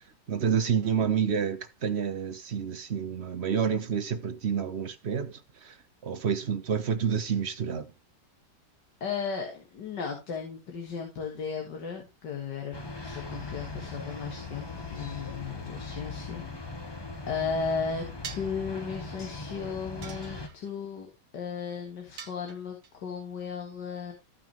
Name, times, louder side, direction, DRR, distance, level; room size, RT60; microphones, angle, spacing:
voice 1, 0.3-5.8 6.0-7.9, right 7 dB, 50° right, 0.9 m, -29 dB
voice 2, 9.0-12.8 13.0-16.8 17.3-21.1 21.3-24.1, left 5 dB, 80° left, 2.3 m, -35 dB
sound 1, 12.7-20.5, left 3 dB, 20° left, 0.8 m, -39 dB
sound 2, 18.2-18.6 20.0-20.7 22.2-22.9, right 8 dB, 65° right, 1.4 m, -43 dB
14.5 x 5.6 x 3.0 m
omnidirectional pair, 1.8 m